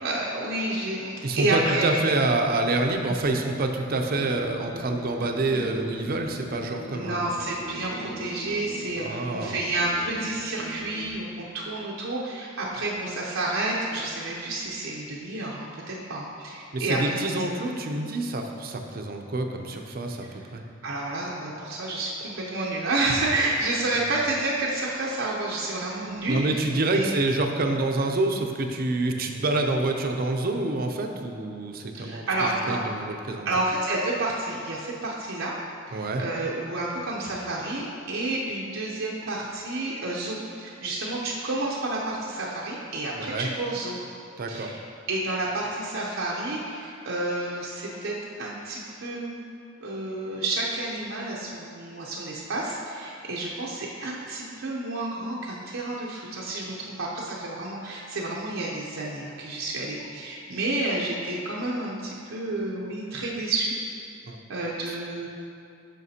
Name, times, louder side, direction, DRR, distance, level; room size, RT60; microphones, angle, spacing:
voice 1, 0.0-1.9 6.9-17.3 20.8-26.7 26.9-27.1 31.9-32.8 33.4-35.6 35.9-44.0 44.5-44.8 45.1-49.3 49.8-63.7 64.5-65.3, right 2 dB, 80° right, -5 dB, 0.7 m, -30 dB
voice 2, 1.2-7.3 9.0-9.7 16.7-20.3 20.5-20.6 26.3-32.3 32.7-33.5 35.9-36.2 43.1-43.5 44.4-44.7 64.3-64.4 64.9-65.0, right 2 dB, 50° right, 4 dB, 0.6 m, -27 dB
sound 1, 3.9-11.1, right 1 dB, 45° left, 1.4 m, -40 dB
9.2 x 5.8 x 2.8 m, 2.7 s
head